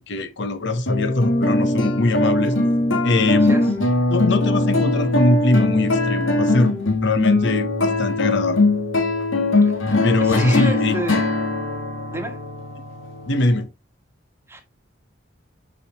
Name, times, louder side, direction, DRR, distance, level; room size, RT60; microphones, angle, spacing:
voice 1, 0.0-2.6 3.0-3.6 4.1-6.7 7.0-8.6 10.0-11.0 13.3-13.7, left 2 dB, 65° left, 0.9 m, -21 dB
sound 1, 0.9-13.6, left 2 dB, 90° left, 1.9 m, -21 dB
voice 2, 3.3-3.7 9.6-9.8 10.2-11.3 12.1-12.4 14.5-14.6, right 1 dB, 15° right, 1.3 m, -31 dB
7.4 x 5.1 x 2.9 m
head